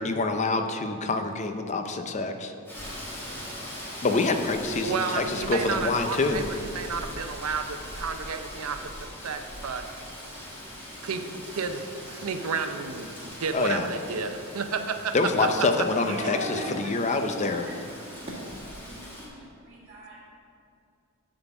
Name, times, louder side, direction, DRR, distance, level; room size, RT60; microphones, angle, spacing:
voice 1, 0.0-2.5 4.0-6.5 13.5-13.9 15.1-17.7, left 3 dB, 30° left, 6 dB, 0.5 m, -26 dB
Rain, 2.7-19.3, equal, 10° left, 1.6 m, -41 dB
voice 2, 4.8-9.8 11.0-15.1 15.4-15.5, right 5 dB, 80° right, 7 dB, 0.6 m, -32 dB
voice 3, 16.0-20.2, right 1 dB, 30° right, -10 dB, 1.6 m, -38 dB
9.5 x 3.9 x 7.0 m, 2.6 s
head